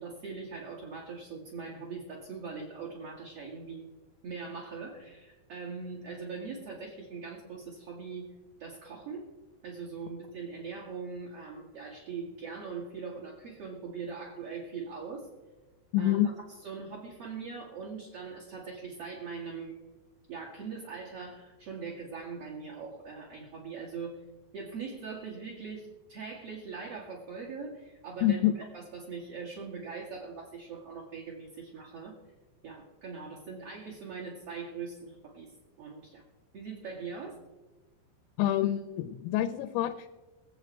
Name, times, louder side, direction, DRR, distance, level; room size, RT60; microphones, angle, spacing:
voice 1, 0.0-3.9 4.2-8.3 8.6-9.3 9.6-15.3 16.0-16.2 16.6-19.8 20.3-24.3 24.5-28.4 28.7-32.2 32.6-35.5 35.8-36.2 36.5-37.4, right 5 dB, 45° right, -4 dB, 2.3 m, -41 dB
voice 2, 15.9-16.3 28.2-28.5 38.4-40.1, left 13 dB, 85° left, 8 dB, 2.9 m, -27 dB
22.0 x 8.1 x 4.5 m, 1.2 s
omnidirectional pair, 5.1 m